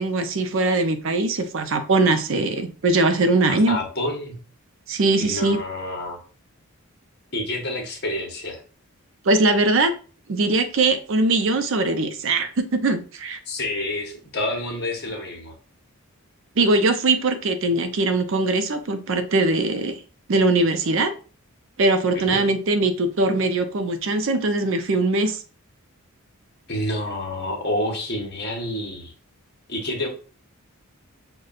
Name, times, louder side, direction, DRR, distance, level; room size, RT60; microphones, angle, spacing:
voice 1, 0.0-3.8 4.9-5.6 9.3-9.9 10.3-13.4 16.6-20.0 20.3-21.1 21.8-25.4, right 2 dB, 60° right, 7 dB, 0.5 m, -21 dB
voice 2, 3.5-4.4 5.2-6.2 7.3-8.6 13.5-15.5 22.1-22.4 26.7-29.1 29.7-30.1, left 1 dB, 45° left, 2 dB, 0.9 m, -28 dB
6.4 x 2.2 x 2.4 m, 0.37 s
head